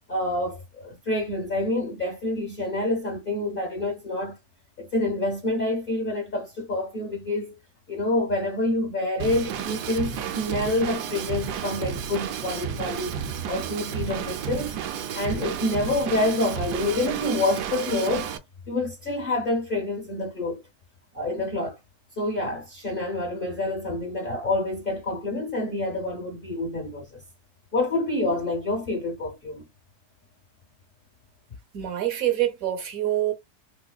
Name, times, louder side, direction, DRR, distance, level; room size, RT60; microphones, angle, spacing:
voice 1, 0.1-4.4 4.8-7.6 7.9-13.1 13.5-14.8 15.1-18.3 18.7-20.6 21.1-21.8 22.2-27.2 27.7-29.6, left 2 dB, 40° left, 0.9 m, -27 dB
Drum kit / Drum, 9.2-18.4, right 8 dB, 85° right, 1.2 m, -32 dB
voice 2, 31.7-33.3, right 13 dB, 65° right, 1.1 m, -25 dB
3.3 x 3.0 x 2.3 m
omnidirectional pair, 1.7 m